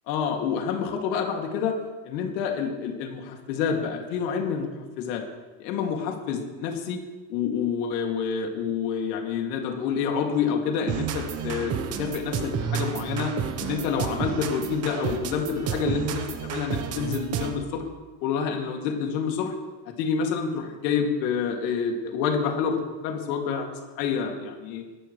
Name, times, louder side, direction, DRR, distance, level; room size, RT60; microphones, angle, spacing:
voice 1, 0.1-1.7 2.1-4.7 5.0-5.2 5.6-7.0 7.3-13.3 13.6-17.8 18.2-19.5 19.9-22.8 23.0-23.7 24.0-24.8, left 6 dB, 90° left, 2 dB, 2.6 m, -28 dB
sound 1, 10.9-17.7, right 7 dB, 30° right, 1.0 m, -31 dB
22.0 x 12.0 x 3.3 m, 1.2 s
cardioid pair, 165°, 49 cm